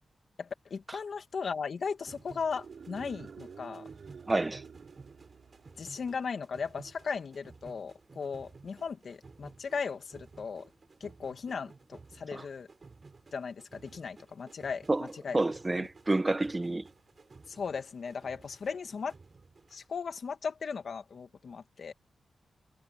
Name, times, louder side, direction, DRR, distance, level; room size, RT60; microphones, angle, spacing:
voice 1, 0.4-3.8 5.8-10.7 11.0-12.7 13.3-15.4 15.8-15.9 17.5-19.1 19.7-21.9, left 5 dB, 60° left, 2.6 m, -37 dB
sound 1, 2.0-19.9, right 4 dB, 40° right, 5.3 m, -55 dB
sound 2, 2.4-6.0, right 6 dB, 65° right, 5.6 m, -50 dB
voice 2, 4.3-4.6 12.3-12.4 14.9-15.1 15.3-16.9, right 2 dB, 20° right, 1.2 m, -29 dB
wide cardioid pair, 110°, 0 cm